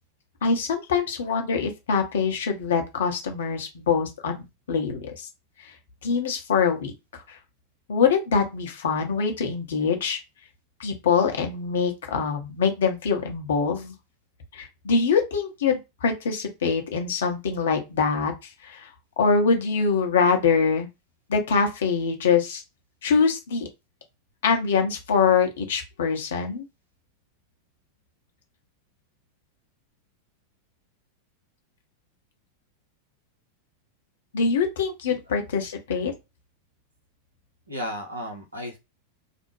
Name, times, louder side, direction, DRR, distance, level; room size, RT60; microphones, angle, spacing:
voice 1, 0.4-4.4 4.7-5.3 5.6-5.7 6.0-7.4 7.9-10.2 10.8-13.9 14.5-18.3 18.6-18.9 19.2-20.9 21.3-22.6 23.0-23.7 24.4-26.7 34.3-36.1, left 5 dB, 60° left, 4 dB, 0.7 m, -24 dB
voice 2, 37.7-38.8, equal, 80° right, 1 dB, 0.8 m, -34 dB
2.4 x 2.1 x 3.1 m, 0.24 s
figure-of-eight pair, 90°, 0 cm